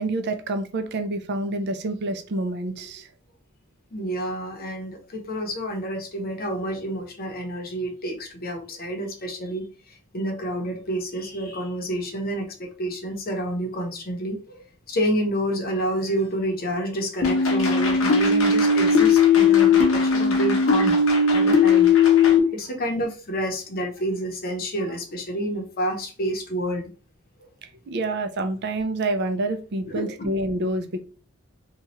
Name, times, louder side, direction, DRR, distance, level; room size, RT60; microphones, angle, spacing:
voice 1, 0.0-3.1 27.9-31.0, right 2 dB, 55° right, 7 dB, 0.4 m, -27 dB
voice 2, 3.9-21.0 21.3-22.1 22.5-26.9 29.9-30.3, right 1 dB, 45° left, 3 dB, 0.8 m, -29 dB
sound 1, 17.2-22.4, left 5 dB, 75° left, 0.8 m, -18 dB
2.9 x 2.3 x 2.9 m, 0.37 s
head